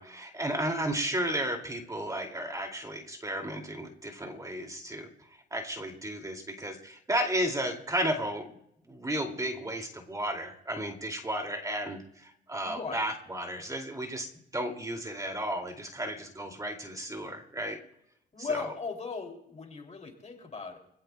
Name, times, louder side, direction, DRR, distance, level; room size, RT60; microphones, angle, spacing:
voice 1, 0.0-5.1 5.5-8.5 8.9-14.3 14.5-17.8 18.4-18.6, right 1 dB, 15° right, 3 dB, 2.5 m, -33 dB
voice 2, 12.6-13.1 18.3-20.8, left 4 dB, 35° left, 3 dB, 2.8 m, -37 dB
25.0 x 16.5 x 2.3 m, 0.76 s
cardioid pair, 90°, 20 cm